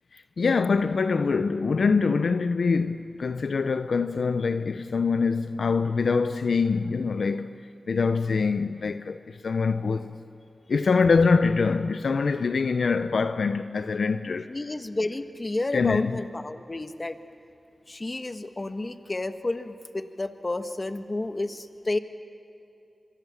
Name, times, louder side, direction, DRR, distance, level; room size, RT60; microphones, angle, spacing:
voice 1, 0.1-7.6 7.9-10.1 10.7-14.5 15.7-16.2, left 4 dB, 80° left, 0.7 m, -24 dB
voice 2, 14.5-17.2 17.9-22.0, left 2 dB, 40° left, 1.4 m, -31 dB
25.5 x 23.5 x 7.4 m
cardioid pair, 45°, 0 cm